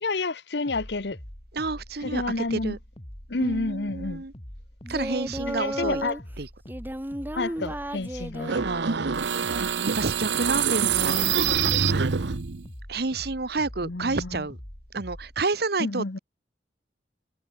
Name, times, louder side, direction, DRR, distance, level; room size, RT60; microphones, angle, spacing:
voice 1, 0.0-1.2 2.0-2.8 3.3-4.2 5.5-6.2 7.3-8.6 9.5-9.6 13.8-14.5 15.8-16.2, left 3 dB, 70° left, 1.1 m, -30 dB
sound 1, 0.7-15.4, equal, 30° left, 3.2 m, -44 dB
voice 2, 1.5-2.2 2.5-2.8 3.4-4.3 4.9-6.0 6.4-6.5 8.6-11.3 11.6-12.0 12.9-14.6 14.9-16.2, right 3 dB, 60° right, 1.2 m, -30 dB
Singing, 4.8-6.2 6.7-8.7 9.5-10.0, right 1 dB, 10° right, 1.9 m, -34 dB
sound 2, 8.4-12.7, right 7 dB, 85° right, 0.8 m, -25 dB
head